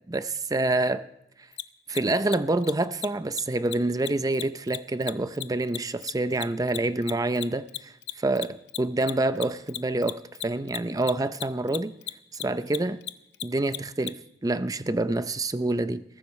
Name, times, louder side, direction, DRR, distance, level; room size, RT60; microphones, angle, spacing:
voice 1, 0.1-1.1 1.9-11.9 12.4-13.0 13.4-14.2 14.4-16.0, right 2 dB, 20° right, 0.6 m, -27 dB
Mechanisms, 1.5-1.6 1.9-2.0 2.3-2.4 2.6-2.7 3.0-3.1 3.3-3.4 3.7-3.8 4.1-6.8 7.0-14.1, left 13 dB, 70° left, 0.7 m, -34 dB
21.0 x 14.5 x 3.2 m
head